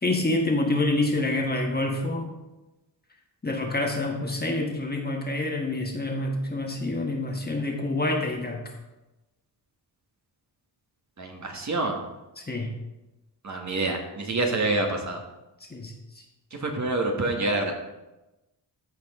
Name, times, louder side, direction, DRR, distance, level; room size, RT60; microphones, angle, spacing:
voice 1, 0.0-2.3 3.4-8.6 12.4-12.7 15.7-15.9, left 2 dB, 20° left, 1 dB, 1.5 m, -27 dB
voice 2, 11.2-12.0 13.4-15.2 16.5-17.7, right 2 dB, 40° right, 2 dB, 1.5 m, -27 dB
14.0 x 5.2 x 3.7 m, 1.0 s
cardioid pair, 95°, 43 cm